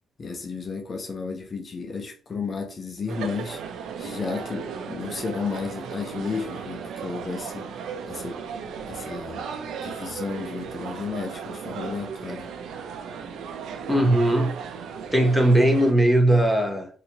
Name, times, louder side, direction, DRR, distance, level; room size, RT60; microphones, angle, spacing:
voice 1, 0.2-3.6 4.0-7.7 8.1-8.4 8.9-9.5 9.8-12.5, left 5 dB, 40° left, 0.6 m, -33 dB
sound 1, 3.1-15.9, right 6 dB, 80° right, 0.5 m, -36 dB
voice 2, 13.9-14.6 15.1-16.9, right 1 dB, ahead, 0.9 m, -19 dB
3.7 x 2.7 x 2.9 m
cardioid pair, 90°, 0 cm